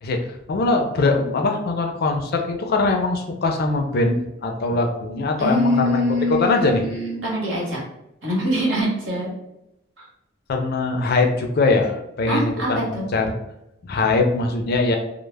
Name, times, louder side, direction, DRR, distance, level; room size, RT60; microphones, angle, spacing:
voice 1, 0.0-6.8 10.5-13.4 13.8-15.0, left 3 dB, 55° left, 4 dB, 0.4 m, -22 dB
voice 2, 5.4-7.8 8.2-9.3 12.3-13.0, equal, 75° right, -4 dB, 1.1 m, -23 dB
2.1 x 2.0 x 3.3 m, 0.84 s
head